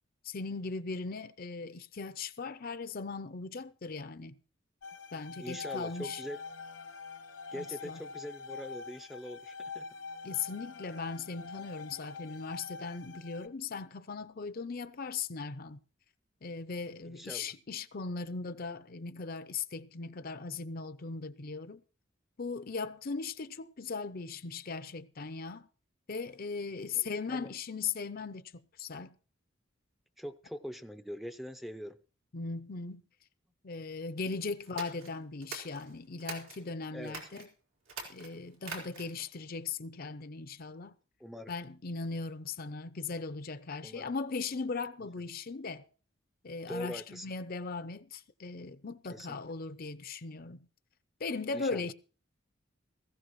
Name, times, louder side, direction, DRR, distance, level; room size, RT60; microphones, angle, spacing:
voice 1, 0.2-4.4 5.1-6.2 7.5-8.0 10.2-15.8 16.4-21.8 22.4-25.7 26.1-29.1 32.3-33.0 33.6-37.5 38.1-40.9 41.5-45.8 46.4-50.6 51.2-51.9, left 4 dB, 50° left, 0.6 m, -38 dB
sound 1, 4.8-13.5, left 5 dB, 75° left, 0.9 m, -45 dB
voice 2, 5.4-6.4 7.5-9.9 17.0-17.5 26.9-27.5 30.2-32.0 36.9-37.2 41.2-41.5 43.8-44.1 46.7-47.3 49.1-49.4 51.5-51.9, equal, ahead, 0.6 m, -43 dB
sound 2, 34.6-36.6 37.0-37.5 37.8-39.3, right 4 dB, 90° right, 4.1 m, -44 dB
18.5 x 15.5 x 3.1 m
head